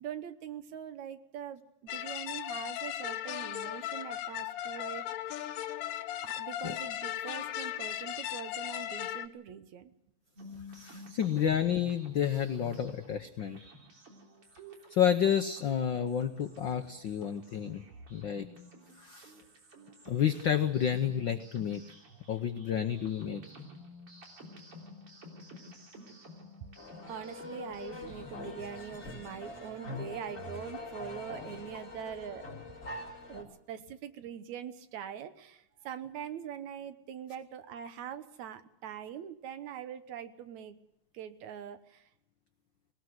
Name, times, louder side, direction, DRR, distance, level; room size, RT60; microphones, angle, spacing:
voice 1, 0.0-5.4 6.2-9.9 26.6-26.7 27.1-32.8 33.3-40.8 41.1-42.1, right 9 dB, 75° right, 11 dB, 2.4 m, -43 dB
sound 1, 1.9-9.3, left 12 dB, 75° left, 2.2 m, -37 dB
sound 2, 10.4-29.2, equal, 50° right, 4.2 m, -52 dB
voice 2, 10.7-13.6 14.9-17.8 18.1-18.5 19.0-19.3 20.1-21.8 22.3-23.4, left 9 dB, 90° left, 8 dB, 1.0 m, -30 dB
sound 3, 26.8-33.4, left 2 dB, 25° left, 4.7 m, -43 dB
20.0 x 19.0 x 7.9 m, 0.79 s
omnidirectional pair, 3.4 m